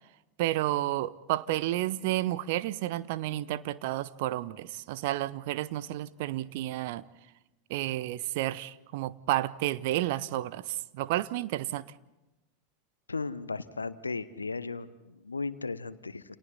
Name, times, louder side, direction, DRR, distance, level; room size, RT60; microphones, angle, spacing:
voice 1, 0.4-7.0 7.7-11.8, right 15 dB, 55° right, 0.8 m, -31 dB
voice 2, 13.1-16.2, left 4 dB, 80° left, 1.0 m, -36 dB
29.5 x 28.0 x 4.1 m
figure-of-eight pair, 85°, 0 cm